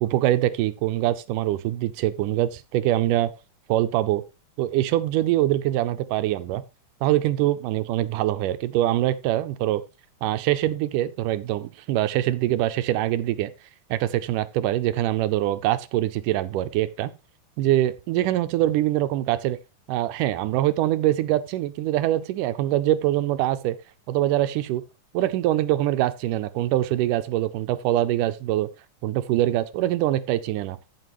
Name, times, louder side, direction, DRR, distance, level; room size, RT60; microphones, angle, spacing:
voice 1, 0.0-3.3 3.7-4.2 4.6-6.6 7.0-9.8 10.2-13.5 13.9-17.1 17.6-19.6 19.9-23.8 24.1-24.8 25.1-28.7 29.0-30.8, right 14 dB, 85° right, 2.2 m, -24 dB
14.5 x 5.9 x 3.0 m
omnidirectional pair, 3.7 m